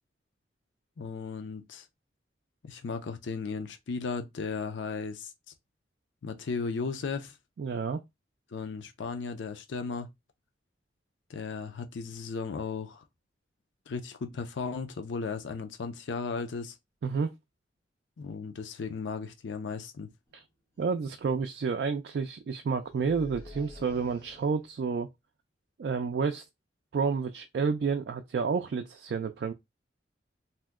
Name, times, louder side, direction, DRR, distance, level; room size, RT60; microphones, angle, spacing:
voice 1, 1.0-1.9 2.6-5.3 6.2-7.3 8.5-10.1 11.3-13.0 13.9-16.7 18.2-20.1, left 4 dB, 90° left, 0.5 m, -35 dB
voice 2, 7.6-8.0 17.0-17.3 20.3-20.4 20.8-25.1 25.8-26.4 26.9-29.5, right 5 dB, 65° right, 0.3 m, -30 dB
sound 1, 20.3-20.4 20.7-21.1 22.8-24.8, left 2 dB, 20° left, 1.1 m, -49 dB
2.8 x 2.1 x 3.5 m
head